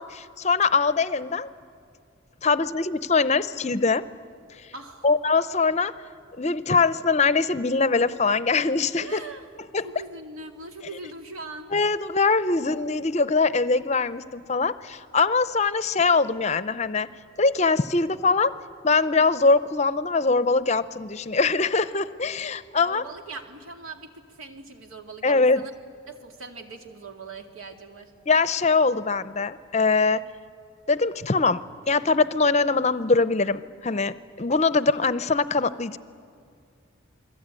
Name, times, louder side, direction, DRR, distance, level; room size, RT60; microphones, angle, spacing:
voice 1, 0.0-1.5 2.4-4.0 5.0-5.9 6.4-9.2 9.7-9.9 11.7-17.1 17.4-18.5 18.8-23.0 25.2-25.6 28.3-30.2 30.9-36.0, left 4 dB, 30° left, 14 dB, 0.6 m, -22 dB
voice 2, 4.7-5.1 9.0-9.4 9.8-11.7 22.8-25.7 26.1-28.1, right 3 dB, 85° right, 4 dB, 2.4 m, -41 dB
28.5 x 21.5 x 9.0 m, 2.3 s
head